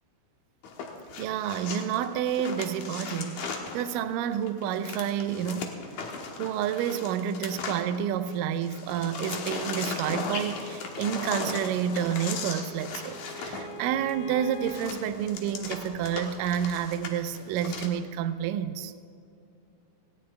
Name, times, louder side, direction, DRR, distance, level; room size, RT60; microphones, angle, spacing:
sound 1, 0.6-8.4 8.6-17.9, left 4 dB, 65° left, 2.4 m, -37 dB
voice 1, 1.2-5.7 6.4-18.9, right 9 dB, 80° right, 10 dB, 2.2 m, -29 dB
Bowed string instrument, 11.8-15.0, right 2 dB, 85° left, 3.4 m, -44 dB
19.0 x 16.5 x 3.3 m, 2.6 s
omnidirectional pair, 4.1 m